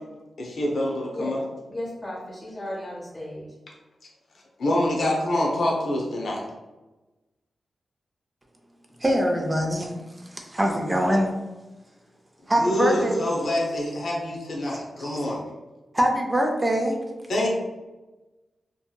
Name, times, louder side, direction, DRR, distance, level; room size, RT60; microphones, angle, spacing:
voice 1, 0.4-1.4 4.6-6.4 12.6-15.4 17.3-17.6, left 1 dB, 75° left, 0.7 m, -26 dB
voice 2, 1.7-3.5, left 1 dB, 20° left, 0.8 m, -35 dB
voice 3, 9.0-9.9 10.2-11.3 12.5-13.2 14.7-15.2 15.9-17.0, equal, 20° right, 0.4 m, -23 dB
2.7 x 2.5 x 2.2 m
wide cardioid pair, 105°, 0 cm